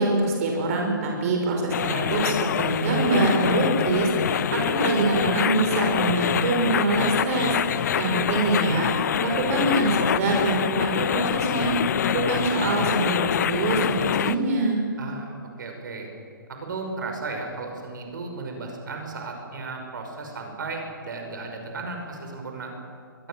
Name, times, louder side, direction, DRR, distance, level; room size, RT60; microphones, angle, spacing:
voice 1, 0.0-14.8, right 2 dB, 40° right, 1 dB, 5.3 m, -24 dB
sound 1, 1.7-14.3, left 9 dB, 50° left, 0.9 m, -25 dB
voice 2, 15.0-16.1 16.5-22.7, right 3 dB, 60° right, 3 dB, 5.7 m, -35 dB
24.0 x 21.5 x 7.7 m, 2.2 s
figure-of-eight pair, 130°, 12 cm